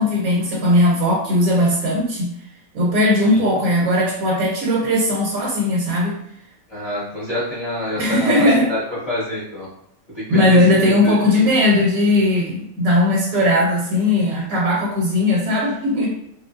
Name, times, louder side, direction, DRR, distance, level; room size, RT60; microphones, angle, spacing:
voice 1, 0.0-2.3 2.7-6.2 8.0-8.7 10.3-16.1, left 1 dB, 75° right, -3 dB, 1.1 m, -18 dB
voice 2, 3.2-3.6 6.7-9.7 10.1-11.2, equal, 30° left, -9 dB, 0.8 m, -27 dB
2.9 x 2.5 x 2.5 m, 0.74 s
omnidirectional pair, 1.5 m